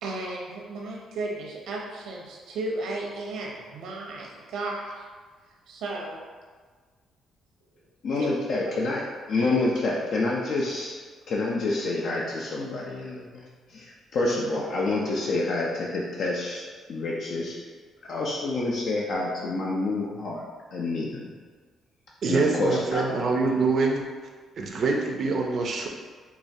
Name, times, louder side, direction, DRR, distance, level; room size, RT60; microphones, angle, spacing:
voice 1, 0.0-5.0 5.7-6.2 8.2-8.3 9.4-9.5, right 2 dB, 80° right, -1 dB, 0.7 m, -34 dB
voice 2, 8.0-10.9 11.3-16.6 16.9-17.6 18.1-20.4 20.7-21.3 22.3-23.0, left 2 dB, 65° left, -3 dB, 0.5 m, -28 dB
voice 3, 22.2-24.1 24.6-25.9, right 4 dB, 55° right, 1 dB, 0.5 m, -25 dB
4.8 x 2.3 x 2.6 m, 1.5 s
cardioid pair, 90°, 0 cm